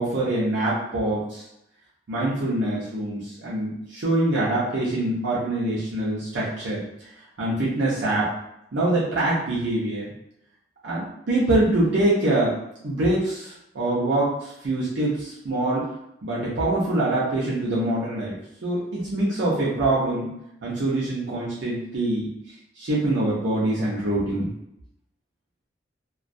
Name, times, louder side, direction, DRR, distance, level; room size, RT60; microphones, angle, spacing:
voice 1, 0.0-1.4 2.1-6.8 7.4-8.3 8.7-10.1 10.8-12.5 12.8-15.8 16.2-18.3 18.6-20.3 20.6-22.3 22.8-24.5, right 1 dB, 75° right, -7 dB, 0.6 m, -24 dB
2.2 x 2.2 x 2.5 m, 0.80 s
head